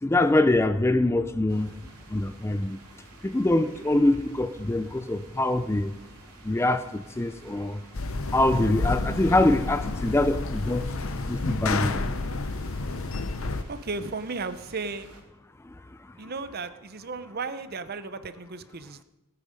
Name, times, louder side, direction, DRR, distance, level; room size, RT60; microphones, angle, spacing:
voice 1, 0.0-1.7 2.1-2.8 3.2-5.9 6.4-7.8 8.3-10.9 11.3-12.0 15.6-15.7, left 2 dB, 10° left, 11 dB, 0.3 m, -24 dB
sound 1, 1.5-15.2, right 2 dB, 90° right, 2.9 m, -51 dB
sound 2, 7.9-13.6, left 3 dB, 60° left, 0.7 m, -30 dB
voice 2, 13.7-15.1 16.2-19.0, right 4 dB, 45° right, 12 dB, 0.7 m, -35 dB
18.0 x 9.2 x 5.1 m, 1.1 s
head